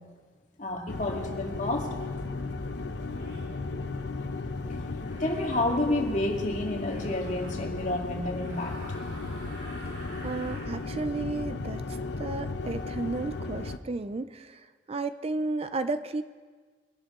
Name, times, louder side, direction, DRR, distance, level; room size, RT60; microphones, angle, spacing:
voice 1, 0.6-2.3 5.2-8.8, left 1 dB, 45° left, 0 dB, 2.1 m, -30 dB
sound 1, 0.9-13.8, left 3 dB, 90° left, 0.8 m, -35 dB
sound 2, 1.7-1.9 3.1-3.5 5.0-5.7 6.8-7.6 8.3-10.8, right 1 dB, 80° right, 4.4 m, -48 dB
voice 2, 10.2-16.2, right 3 dB, 35° right, 11 dB, 0.4 m, -33 dB
23.0 x 11.0 x 3.7 m, 1.5 s
head